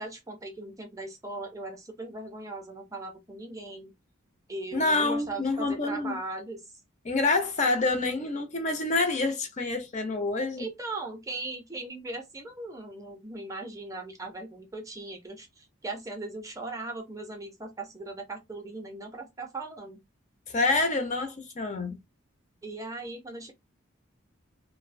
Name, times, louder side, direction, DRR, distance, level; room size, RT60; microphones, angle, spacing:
voice 1, 0.0-4.0 4.5-6.6 10.6-20.0 22.6-23.5, right 2 dB, 15° right, 0.5 m, -39 dB
voice 2, 4.7-6.2 7.0-10.7 20.5-22.0, left 3 dB, 35° left, 0.5 m, -27 dB
2.5 x 2.0 x 2.5 m
head